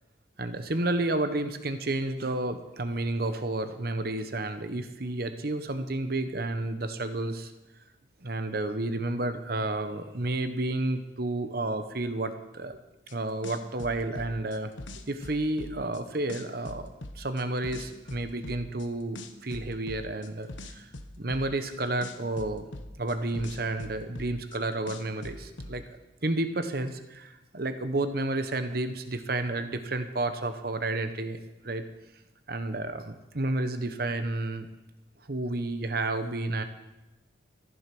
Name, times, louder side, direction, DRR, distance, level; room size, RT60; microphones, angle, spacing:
voice 1, 0.4-7.5 8.2-12.8 13.1-14.7 15.1-20.9 21.2-22.6 23.0-25.8 26.2-31.8 32.5-34.7 35.2-36.6, right 2 dB, 50° right, 9 dB, 1.1 m, -31 dB
sound 1, 13.1-13.2 13.4-16.0 16.3-18.9 19.2-21.7 22.0-24.6 24.9-25.7, left 1 dB, 75° left, 1.1 m, -41 dB
14.0 x 11.0 x 6.1 m, 1.0 s
head